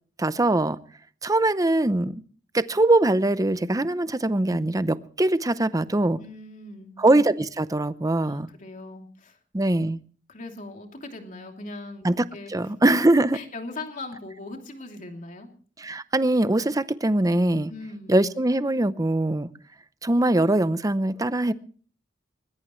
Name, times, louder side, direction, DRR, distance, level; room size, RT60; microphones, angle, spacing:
voice 1, 0.2-0.8 1.2-2.2 2.5-6.2 7.0-8.5 9.5-10.0 12.0-13.4 15.8-17.7 18.1-19.5 20.0-21.5, right 2 dB, 20° right, 0.7 m, -22 dB
voice 2, 6.2-6.9 8.2-9.4 10.3-12.0 12.3-12.5 13.3-15.5 17.7-18.1, left 2 dB, 45° left, 2.9 m, -39 dB
20.5 x 20.0 x 3.2 m
head